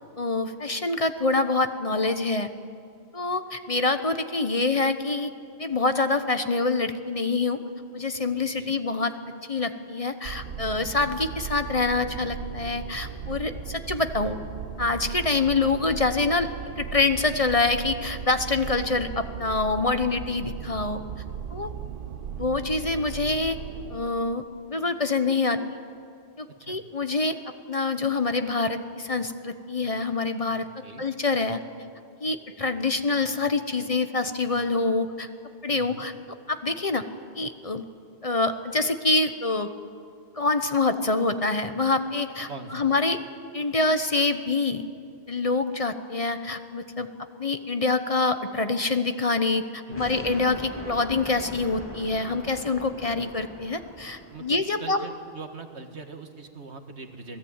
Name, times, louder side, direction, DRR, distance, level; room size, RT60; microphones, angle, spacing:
voice 1, 0.2-2.5 3.1-5.3 5.6-7.6 7.9-9.1 9.5-14.4 14.8-16.5 16.8-21.0 21.5-21.7 22.4-23.6 23.9-25.6 26.4-27.4 27.7-30.7 31.0-31.6 32.2-35.3 35.6-36.1 36.5-37.0 37.3-37.8 38.2-39.7 40.3-43.2 43.5-44.8 45.3-47.1 47.4-55.0, left 3 dB, 35° left, 9 dB, 1.0 m, -26 dB
sound 1, 10.2-24.0, right 8 dB, 55° right, 1.0 m, -37 dB
voice 2, 35.7-36.1 42.5-42.9 49.9-50.3 54.3-57.4, right 4 dB, 85° right, 6 dB, 2.0 m, -42 dB
sound 2, 49.9-54.8, equal, 10° left, 2.8 m, -41 dB
27.0 x 18.5 x 8.8 m, 2.3 s
omnidirectional pair, 1.1 m